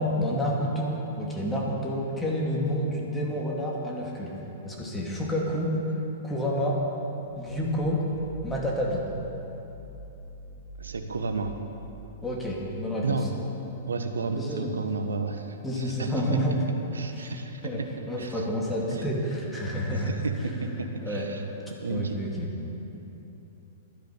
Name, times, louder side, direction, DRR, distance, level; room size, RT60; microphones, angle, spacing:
voice 1, 0.0-4.3 4.6-5.7 6.2-6.8 7.4-8.0 8.4-9.0 12.2-13.2 14.4-14.7 15.6-16.5 17.2-17.3 17.6-17.8 18.1-20.1 21.0-22.5, equal, 10° left, -3 dB, 2.5 m, -29 dB
sound 1, 7.2-12.6, right 2 dB, 45° right, 3.5 m, -45 dB
voice 2, 10.8-11.5 13.0-13.3 13.9-16.2 16.9-17.7 18.2-18.4 20.0-21.4 21.8-22.2, right 4 dB, 80° right, 7 dB, 1.1 m, -32 dB
12.0 x 10.0 x 6.9 m, 3.0 s
figure-of-eight pair, 110°, 0 cm